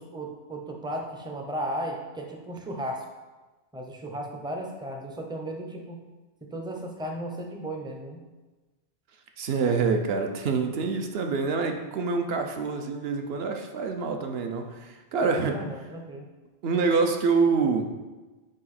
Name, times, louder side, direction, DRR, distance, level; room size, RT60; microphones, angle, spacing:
voice 1, 0.0-3.0 3.7-6.0 6.4-8.2 15.2-16.3, right 1 dB, 5° right, 2 dB, 0.4 m, -35 dB
voice 2, 9.4-15.6 16.6-17.8, right 4 dB, 65° right, 5 dB, 0.9 m, -26 dB
5.2 x 4.8 x 4.2 m, 1.2 s
omnidirectional pair, 1.2 m